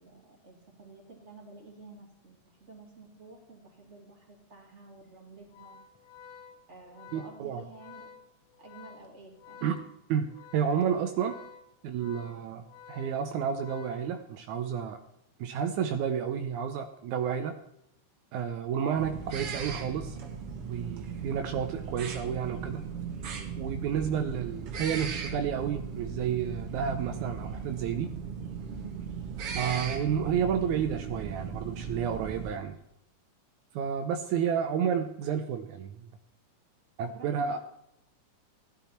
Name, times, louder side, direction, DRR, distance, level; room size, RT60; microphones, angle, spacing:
voice 1, 0.0-5.8 6.7-8.1 8.6-9.6 11.9-12.2 28.7-29.0 37.0-37.6, right 3 dB, 25° right, -1 dB, 2.9 m, -51 dB
Organ, 5.4-14.6, left 7 dB, 70° left, 1.5 m, -52 dB
voice 2, 7.1-7.6 9.6-9.8 10.1-11.3 11.8-15.0 15.4-17.6 18.3-20.2 20.6-22.8 23.6-28.1 29.5-32.7 33.7-36.1 37.0-37.6, right 8 dB, 80° right, 6 dB, 2.2 m, -31 dB
sound 1, 19.0-32.5, right 6 dB, 55° right, 2.1 m, -37 dB
15.5 x 11.0 x 4.4 m, 0.77 s
omnidirectional pair, 3.4 m